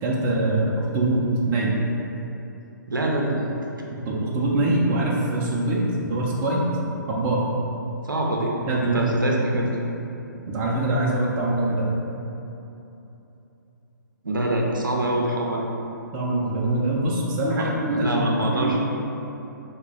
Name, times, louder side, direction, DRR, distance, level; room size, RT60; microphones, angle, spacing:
voice 1, 0.0-1.7 4.0-6.7 7.1-7.4 8.7-9.1 10.5-11.9 16.1-18.2 18.5-18.8, right 2 dB, 20° right, -5 dB, 0.4 m, -23 dB
voice 2, 2.9-3.5 8.0-8.5 8.8-9.7 14.2-15.7 17.5-18.8, right 1 dB, 85° right, -1 dB, 0.5 m, -24 dB
4.9 x 2.1 x 3.3 m, 3.0 s
figure-of-eight pair, 125°, 11 cm